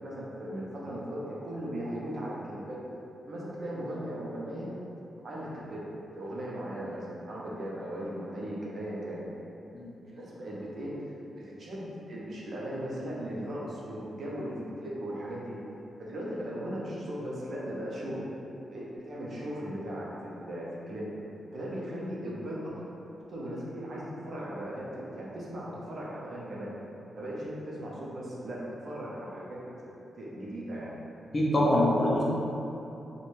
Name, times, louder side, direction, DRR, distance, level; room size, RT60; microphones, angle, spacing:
voice 1, 0.0-2.8 3.3-4.7 5.2-5.9 6.1-9.2 10.0-11.1 11.4-15.6 16.0-18.2 18.7-21.1 21.5-22.8 23.3-26.7 27.2-29.9 30.1-30.9, equal, 50° right, -6 dB, 0.5 m, -37 dB
voice 2, 31.3-32.2, left 1 dB, 30° left, -6 dB, 0.5 m, -24 dB
2.5 x 2.1 x 3.0 m, 2.9 s
wide cardioid pair, 140°, 0 cm